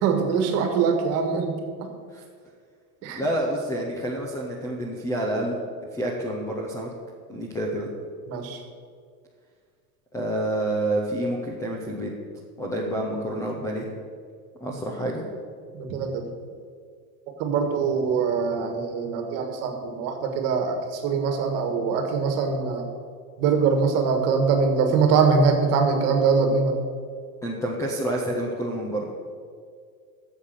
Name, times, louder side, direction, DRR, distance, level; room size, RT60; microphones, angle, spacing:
voice 1, 0.0-1.5 1.8-1.9 3.0-3.2 8.3-8.6 15.7-16.2 17.4-22.9 23.4-26.8, right 5 dB, 35° right, 5 dB, 1.6 m, -23 dB
voice 2, 3.1-5.6 5.9-6.9 7.3-7.9 10.1-12.1 12.6-13.9 14.6-15.2 27.4-29.1, right 1 dB, 5° left, -1 dB, 0.5 m, -28 dB
12.5 x 7.4 x 6.5 m, 2.1 s
supercardioid pair, 175°, 43 cm